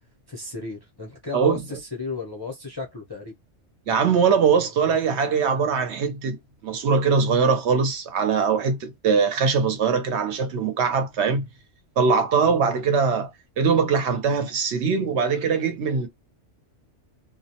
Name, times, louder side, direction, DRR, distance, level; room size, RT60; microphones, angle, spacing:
voice 1, 0.3-3.4, left 3 dB, 30° left, 0.4 m, -34 dB
voice 2, 3.9-6.4 6.6-11.4 12.0-13.3 13.6-16.1, right 5 dB, 70° right, 0.9 m, -21 dB
2.2 x 2.1 x 2.7 m
omnidirectional pair, 1.3 m